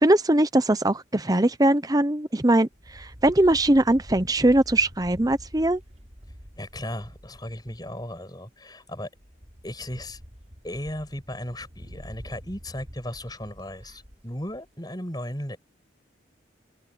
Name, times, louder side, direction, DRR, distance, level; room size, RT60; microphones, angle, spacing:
voice 1, 0.0-5.8, right 1 dB, 20° right, 0.9 m, -21 dB
sound 1, 2.7-8.3 8.8-8.9 9.1-14.7, equal, 35° right, 6.5 m, -46 dB
voice 2, 6.6-9.1 9.6-10.2 10.6-15.6, left 1 dB, 20° left, 7.7 m, -36 dB
head